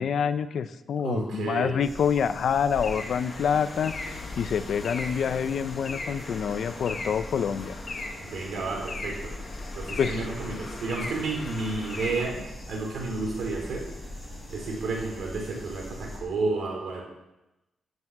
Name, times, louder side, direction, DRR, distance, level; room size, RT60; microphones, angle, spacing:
voice 1, 0.0-7.8 10.0-10.3, left 7 dB, 65° left, 12 dB, 0.8 m, -27 dB
voice 2, 1.0-1.7 8.2-9.3 9.7-13.8 14.5-17.0, right 3 dB, 75° right, 0 dB, 4.9 m, -31 dB
sound 1, 1.8-16.2, left 1 dB, 5° left, 6.4 m, -42 dB
sound 2, 2.7-12.3, left 3 dB, 35° left, 2.0 m, -38 dB
15.5 x 8.0 x 7.4 m, 0.98 s
wide cardioid pair, 145°, 0 cm